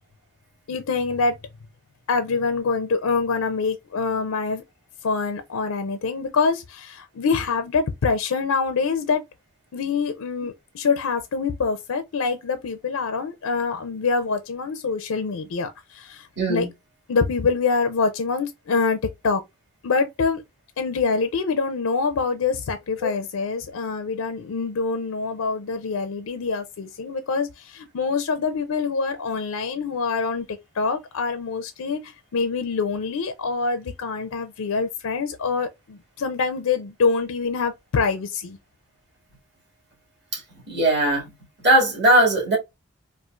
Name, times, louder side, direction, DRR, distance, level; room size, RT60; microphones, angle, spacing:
voice 1, 0.7-1.4 2.1-4.6 5.0-9.2 9.7-16.7 17.1-19.0 19.2-19.4 19.8-20.4 20.8-38.6, left 4 dB, 75° left, 0.4 m, -25 dB
voice 2, 16.4-16.7 23.0-23.1 40.3-40.4 40.7-41.2 41.6-42.6, right 1 dB, 50° right, 2.0 m, -19 dB
4.2 x 2.4 x 2.3 m
head